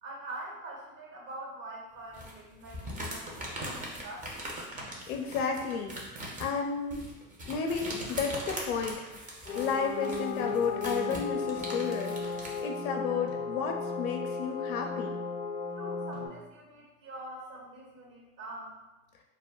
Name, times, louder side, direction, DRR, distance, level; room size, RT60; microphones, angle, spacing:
voice 1, 0.0-4.4 15.8-18.8, right 2 dB, 55° right, -3 dB, 1.2 m, -44 dB
sound 1, 2.1-12.6, right 1 dB, 20° right, 0.7 m, -41 dB
voice 2, 5.1-7.0 7.5-9.1 9.5-15.1, left 6 dB, 85° left, 4 dB, 0.5 m, -32 dB
sound 2, 7.5-8.2 10.4-11.2 13.3-14.0 16.1-16.9, left 2 dB, 80° right, 1.1 m, -55 dB
sound 3, 9.5-16.3, left 4 dB, 20° left, 0.5 m, -35 dB
2.2 x 2.2 x 3.5 m, 1.0 s
hypercardioid pair, 95°, 42 cm